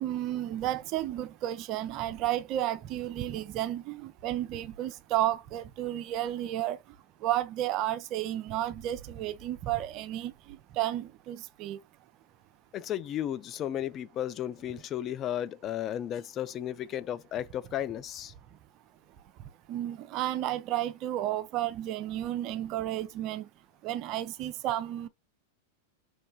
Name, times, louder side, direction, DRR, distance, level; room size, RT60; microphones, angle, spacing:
voice 1, 0.0-6.8 7.2-10.3 10.8-11.8 19.7-23.5 23.8-25.1, right 13 dB, 40° right, 0.4 m, -32 dB
voice 2, 12.7-18.3, left 11 dB, 35° left, 0.3 m, -34 dB
3.2 x 3.1 x 2.2 m
figure-of-eight pair, 95°, 0 cm